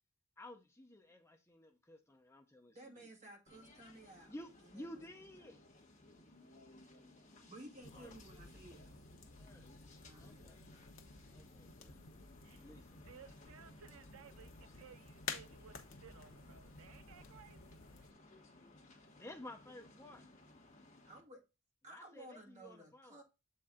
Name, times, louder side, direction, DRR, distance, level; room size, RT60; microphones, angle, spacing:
voice 1, 0.4-3.0 4.2-5.6 7.9-8.1 9.3-9.7 10.2-10.6 11.3-12.0 12.6-13.1 19.1-20.2 21.9-23.2, left 1 dB, 15° left, 0.6 m, -53 dB
voice 2, 2.7-4.3 4.6-5.7 6.2-6.3 7.5-9.0 10.0-10.8 21.0-21.4 21.8-23.2, right 1 dB, 30° right, 1.9 m, -56 dB
sound 1, 3.5-21.2, left 2 dB, 35° left, 1.4 m, -61 dB
sound 2, 7.8-18.1, left 5 dB, 65° left, 1.0 m, -52 dB
voice 3, 13.0-18.1, right 7 dB, 75° right, 0.5 m, -59 dB
7.5 x 4.3 x 3.7 m
head